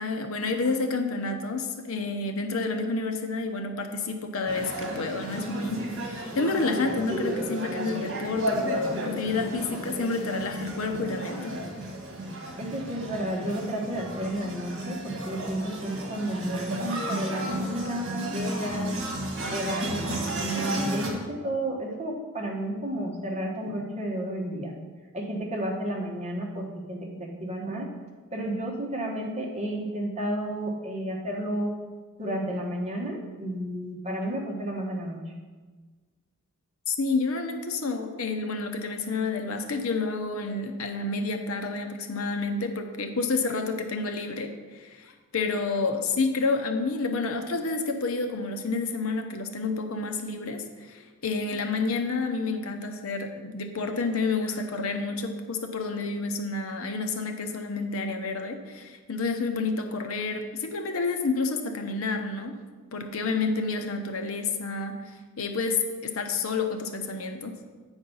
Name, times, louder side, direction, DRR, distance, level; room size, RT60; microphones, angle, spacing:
voice 1, 0.0-11.6 36.9-62.6 62.9-65.0 65.4-67.5, left 3 dB, 70° left, 5 dB, 0.8 m, -29 dB
sound 1, 4.5-21.1, right 1 dB, 55° right, 1.5 m, -33 dB
voice 2, 12.6-18.9 19.5-24.7 25.1-27.9 28.3-31.7 32.2-35.2, right 1 dB, 30° right, -1 dB, 1.2 m, -32 dB
8.7 x 4.5 x 5.4 m, 1.4 s
head